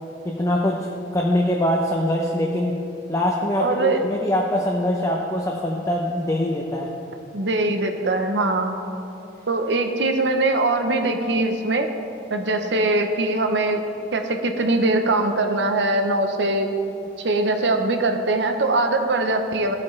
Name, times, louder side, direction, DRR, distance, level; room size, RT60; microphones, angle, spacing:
voice 1, 0.2-2.7 3.1-6.9, left 1 dB, 20° left, -1 dB, 0.6 m, -23 dB
voice 2, 3.6-4.0 7.3-8.7 9.5-11.9 12.3-13.8 14.1-16.7 17.2-19.7, right 2 dB, 75° right, 5 dB, 0.8 m, -22 dB
14.0 x 8.5 x 3.2 m, 2.7 s
head